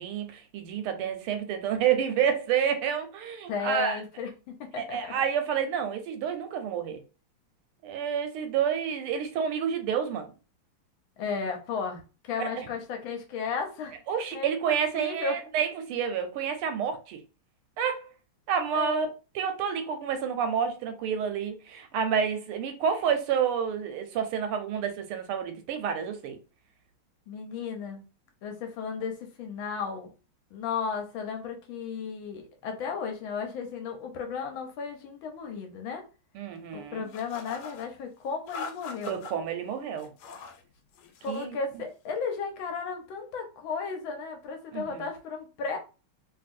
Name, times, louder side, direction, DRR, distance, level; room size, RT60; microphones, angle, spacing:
voice 1, 0.0-4.0 4.8-7.0 7.8-10.3 12.4-12.5 14.1-17.2 17.8-18.1 18.5-19.1 19.3-26.4 36.3-37.1 39.1-40.1 41.3-41.6 44.7-45.0, right 8 dB, 90° right, 1.6 m, -29 dB
voice 2, 3.5-5.0 11.2-12.0 12.3-14.0 14.3-15.3 18.7-19.1 27.3-28.0 28.4-30.1 30.5-36.0 36.7-39.2 41.2-45.8, left 5 dB, 70° left, 1.4 m, -34 dB
sound 1, 37.1-37.9 38.5-39.3 40.0-40.6 40.9-41.5, left 4 dB, 90° left, 1.5 m, -42 dB
3.3 x 2.7 x 2.5 m
omnidirectional pair, 2.4 m